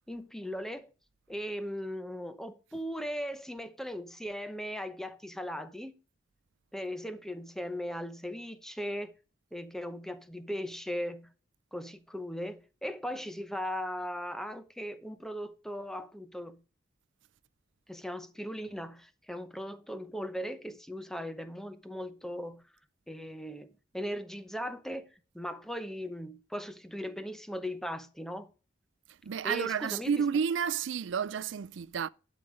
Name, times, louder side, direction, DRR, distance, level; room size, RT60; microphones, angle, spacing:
voice 1, 0.1-0.9 1.3-6.0 6.7-9.1 9.5-11.3 11.7-16.6 17.9-22.6 23.1-28.5 29.4-30.2, equal, 5° left, 0.8 m, -38 dB
voice 2, 29.2-32.1, right 7 dB, 90° right, 0.4 m, -31 dB
11.5 x 5.1 x 5.1 m
head